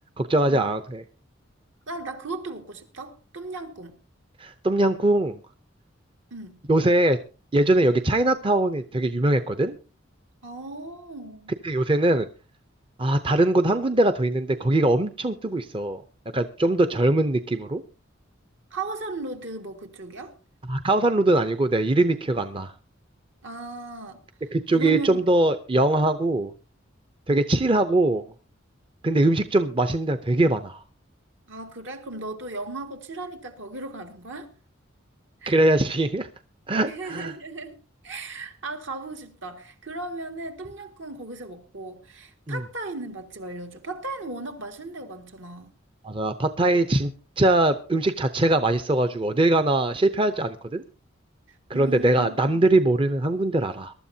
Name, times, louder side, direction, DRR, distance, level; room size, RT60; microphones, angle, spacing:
voice 1, 0.2-1.0 4.4-5.4 6.7-7.2 7.5-9.8 11.6-12.3 13.0-16.0 16.3-17.8 20.7-22.7 24.5-26.5 27.3-28.2 29.0-30.8 35.5-36.3 36.7-37.3 42.5-42.6 46.0-47.1 47.4-50.8 51.7-53.9, right 2 dB, 25° right, 0.6 m, -22 dB
voice 2, 1.9-4.0 6.3-6.6 10.4-11.5 18.7-20.3 23.4-24.2 24.7-25.3 25.7-25.8 31.5-34.5 35.4-35.6 36.9-37.8 38.0-45.7 51.5-52.6, right 2 dB, 70° right, 2.1 m, -36 dB
22.5 x 12.5 x 2.8 m
head